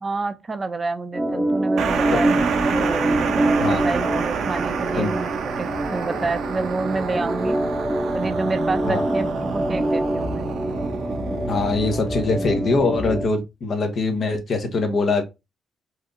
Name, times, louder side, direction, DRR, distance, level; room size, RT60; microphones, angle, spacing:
voice 1, 0.0-7.6 8.1-10.5, right 3 dB, 30° right, 0.6 m, -29 dB
Organ, 1.1-13.3, right 1 dB, 5° left, 0.9 m, -25 dB
sound 1, 1.8-12.3, right 6 dB, 70° right, 0.8 m, -28 dB
voice 2, 11.5-15.2, left 3 dB, 55° left, 1.2 m, -23 dB
4.7 x 2.8 x 3.9 m
cardioid pair, 90°, 0 cm